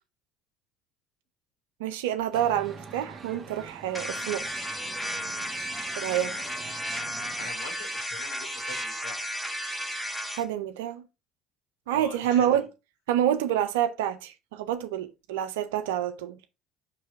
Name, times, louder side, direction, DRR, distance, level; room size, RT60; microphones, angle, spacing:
voice 1, 1.8-4.4 5.9-6.4 10.4-11.0 11.9-12.7 13.1-16.4, right 11 dB, 90° right, 0.5 m, -27 dB
sound 1, 2.3-7.5, right 4 dB, 35° right, 1.1 m, -45 dB
sound 2, 3.9-10.4, equal, 10° left, 1.7 m, -34 dB
voice 2, 6.1-6.7 7.4-9.2 11.9-12.7, left 3 dB, 90° left, 2.9 m, -43 dB
5.3 x 3.2 x 5.6 m
supercardioid pair, 80°, 0 cm